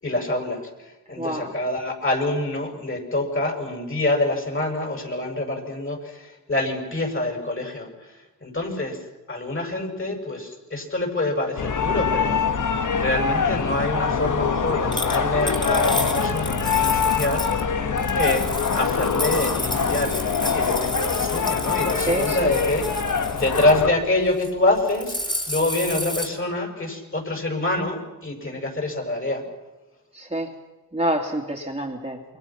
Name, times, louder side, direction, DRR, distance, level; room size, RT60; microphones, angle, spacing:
voice 1, 0.0-9.0 9.3-17.7 18.1-18.5 18.7-23.0 23.3-29.4, left 2 dB, 35° left, 3 dB, 6.7 m, -26 dB
voice 2, 1.2-1.5 22.1-22.5 30.1-30.5 30.9-32.2, right 1 dB, 15° right, 1 dB, 2.6 m, -26 dB
sound 1, 11.6-23.9, left 6 dB, 55° left, 1.6 m, -24 dB
sound 2, 14.9-17.6 18.0-23.8 24.3-24.5 24.8-26.3, left 1 dB, 10° left, 3.6 m, -32 dB
28.5 x 23.0 x 6.0 m, 1.1 s
cardioid pair, 70°, 36 cm